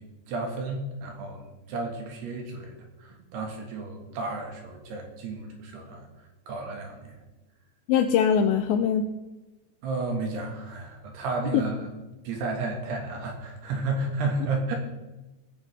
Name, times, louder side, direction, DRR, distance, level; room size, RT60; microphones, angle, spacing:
voice 1, 0.0-6.1 6.5-7.1 9.8-11.9 12.2-14.8, right 3 dB, 65° right, 2 dB, 3.3 m, -32 dB
voice 2, 7.9-9.1 11.5-11.6, left 8 dB, 85° left, 6 dB, 2.6 m, -22 dB
19.0 x 10.0 x 3.4 m, 1.1 s
omnidirectional pair, 5.8 m